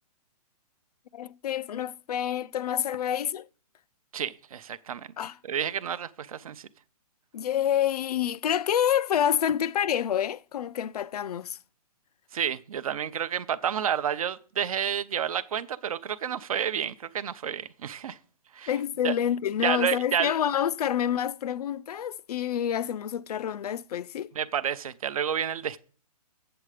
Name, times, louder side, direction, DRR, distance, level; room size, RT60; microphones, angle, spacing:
voice 1, 1.1-3.5 5.2-5.4 7.3-11.6 18.7-24.3, left 10 dB, 80° left, 0.4 m, -28 dB
voice 2, 4.1-5.1 5.4-6.7 12.3-18.2 18.5-18.7 19.0-19.1 19.6-20.3 24.4-25.8, right 8 dB, 65° right, 0.6 m, -30 dB
7.8 x 7.7 x 4.9 m
hypercardioid pair, 165°, 19 cm